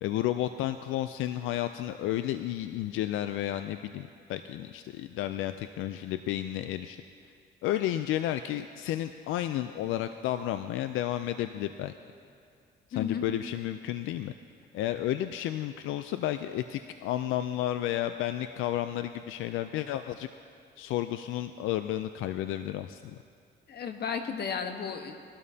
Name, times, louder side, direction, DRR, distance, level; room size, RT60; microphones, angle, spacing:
voice 1, 0.0-7.0 7.6-11.9 13.0-14.3 14.7-20.3 20.8-23.2, left 13 dB, 90° left, 10 dB, 0.4 m, -32 dB
voice 2, 12.9-13.3 23.7-25.2, left 6 dB, 55° left, 6 dB, 1.1 m, -34 dB
19.5 x 12.5 x 2.8 m, 2.4 s
cardioid pair, 90°, 20 cm